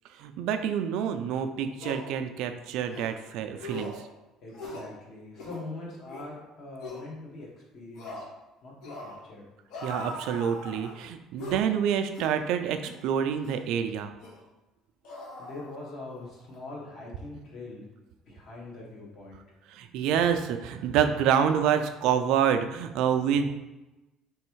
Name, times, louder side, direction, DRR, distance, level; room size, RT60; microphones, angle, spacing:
voice 1, 0.2-4.0 9.8-14.1 19.7-23.6, right 8 dB, 65° right, 8 dB, 0.3 m, -27 dB
sound 1, 1.1-1.2 1.8-2.1 2.9-3.1 3.6-4.0 4.5-4.9 5.3-5.6 6.1-6.3 6.8-7.0 8.0-8.3 8.8-9.2 9.7-11.0 11.4-11.7 12.1-12.4 12.8-13.0 13.4-13.6 14.2-14.4 15.0-16.1 16.4-16.6, left 1 dB, 65° left, 1.1 m, -40 dB
voice 2, 4.4-7.5 7.7-8.2 8.6-9.4 15.4-17.8 18.3-19.4, left 2 dB, 40° left, -3 dB, 1.2 m, -42 dB
3.4 x 3.1 x 4.5 m, 1.0 s
cardioid pair, 160°, 0 cm